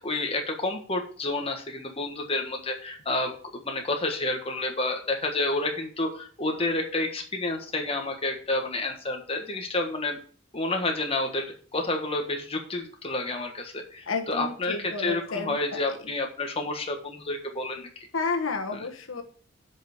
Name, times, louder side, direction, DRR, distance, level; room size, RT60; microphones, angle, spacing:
voice 1, 0.0-10.2 10.5-18.1 18.7-18.8, left 2 dB, 30° left, 3 dB, 1.5 m, -30 dB
voice 2, 14.1-16.1 18.1-19.2, left 4 dB, 85° left, 4 dB, 1.4 m, -31 dB
7.4 x 5.5 x 6.5 m, 0.43 s
head